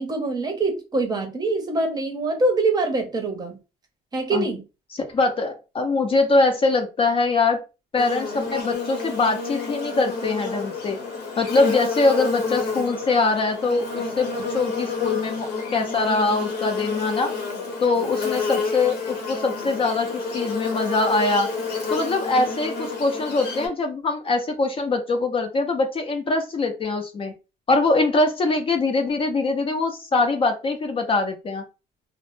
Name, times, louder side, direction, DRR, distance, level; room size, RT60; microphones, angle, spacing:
voice 1, 0.0-3.6 4.1-4.6, right 2 dB, 25° right, 0.6 m, -24 dB
voice 2, 5.1-7.6 7.9-11.0 11.4-17.3 17.8-21.5 21.9-27.3 27.7-31.6, left 3 dB, 30° left, 0.4 m, -23 dB
Buzz, 8.0-23.7, left 4 dB, 85° left, 0.8 m, -29 dB
2.0 x 2.0 x 3.0 m
cardioid pair, 110°, 17 cm